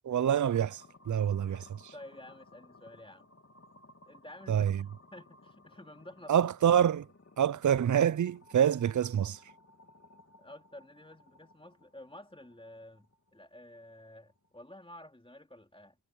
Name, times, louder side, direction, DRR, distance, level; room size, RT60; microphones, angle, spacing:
voice 1, 0.0-1.9 4.5-4.8 6.3-7.1 7.4-9.4, right 9 dB, 50° right, 0.6 m, -27 dB
sound 1, 0.5-14.6, left 2 dB, 40° left, 2.4 m, -59 dB
voice 2, 1.9-3.3 4.1-4.9 5.1-6.5 10.4-16.0, left 1 dB, 15° left, 2.9 m, -51 dB
wide cardioid pair, 65°, 39 cm